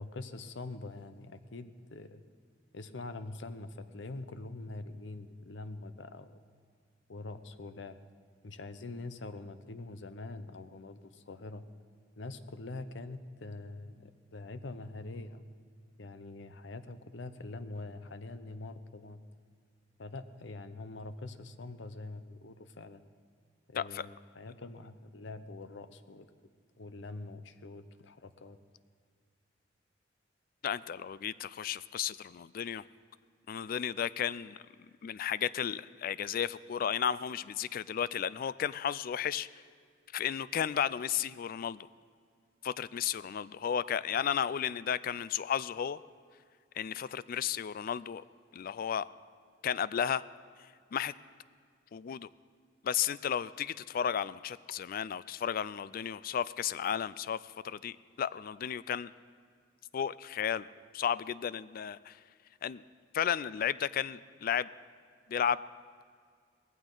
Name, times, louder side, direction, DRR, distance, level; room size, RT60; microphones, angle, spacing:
voice 1, 0.0-2.2 2.7-6.4 7.1-8.0 8.4-11.6 12.2-15.4 16.0-19.2 20.0-23.0 23.7-26.3 26.8-28.6, left 2 dB, 70° left, 11 dB, 0.7 m, -44 dB
voice 2, 23.7-24.1 30.6-32.8 33.5-34.6 35.0-39.5 40.1-41.9 42.6-46.0 46.8-48.2 48.5-49.1 49.6-50.2 50.9-51.1 51.9-52.3 52.8-59.1 59.9-60.6 60.9-62.2 62.6-62.8 63.1-64.7 65.3-65.6, left 8 dB, 50° left, 18 dB, 0.3 m, -33 dB
18.5 x 15.0 x 3.9 m, 2.1 s
head